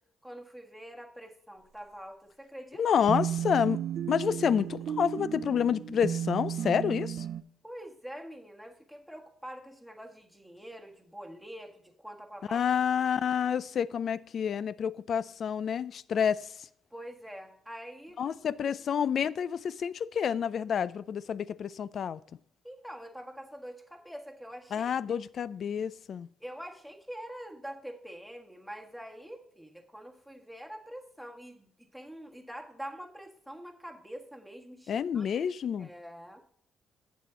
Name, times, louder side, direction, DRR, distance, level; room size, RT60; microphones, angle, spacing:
voice 1, 0.2-2.8 7.6-12.6 16.9-18.4 22.6-25.1 26.4-35.3 35.8-36.4, equal, ahead, 1.5 m, -45 dB
voice 2, 2.8-3.8 4.1-7.3 12.5-16.7 18.2-22.2 24.7-26.3 34.9-35.9, left 8 dB, 60° left, 0.4 m, -29 dB
sound 1, 3.1-7.4, right 9 dB, 65° right, 0.5 m, -34 dB
8.3 x 7.5 x 3.9 m
cardioid pair, 90°, 0 cm